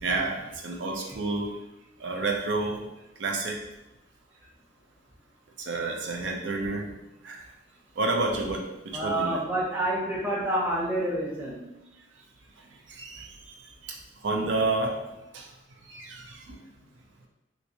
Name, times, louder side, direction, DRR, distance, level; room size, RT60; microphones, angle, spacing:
voice 1, 0.0-1.5 2.0-2.8 3.2-3.6 5.6-6.9 7.2-7.4 8.0-9.4 12.9-13.3 13.8-14.0 14.2-14.9 15.3-15.5 15.9-16.5, right 3 dB, 75° right, 1 dB, 0.5 m, -29 dB
voice 2, 8.9-11.6, right 1 dB, 10° right, -5 dB, 0.7 m, -28 dB
3.2 x 3.0 x 2.6 m, 0.93 s
head